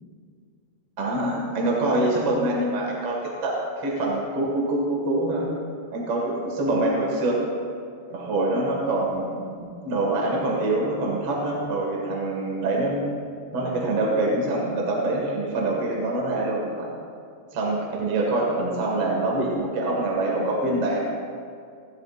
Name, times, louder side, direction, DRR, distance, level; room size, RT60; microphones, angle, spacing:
voice 1, 1.0-5.5 5.9-7.4 8.1-13.1 13.5-16.9 17.5-21.0, right 2 dB, 45° right, -3 dB, 2.1 m, -25 dB
28.0 x 12.0 x 2.5 m, 2.3 s
omnidirectional pair, 4.9 m